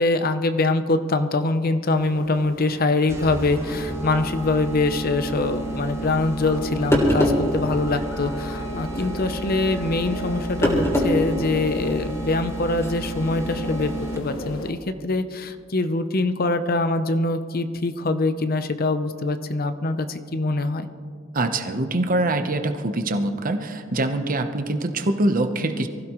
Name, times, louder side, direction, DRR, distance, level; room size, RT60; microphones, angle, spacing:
voice 1, 0.0-20.9, left 2 dB, 50° left, 10 dB, 0.7 m, -24 dB
sound 1, 1.9-14.7, left 1 dB, 85° left, 1.2 m, -37 dB
sound 2, 3.1-14.5, right 2 dB, 15° right, 1.1 m, -33 dB
sound 3, 6.5-6.6 6.9-7.5 8.9-9.1 10.6-11.1 11.5-11.6 12.8-12.9, left 1 dB, 15° left, 3.0 m, -21 dB
voice 2, 21.3-25.9, right 2 dB, 45° right, 7 dB, 0.9 m, -24 dB
24.0 x 15.5 x 3.1 m, 2.2 s
head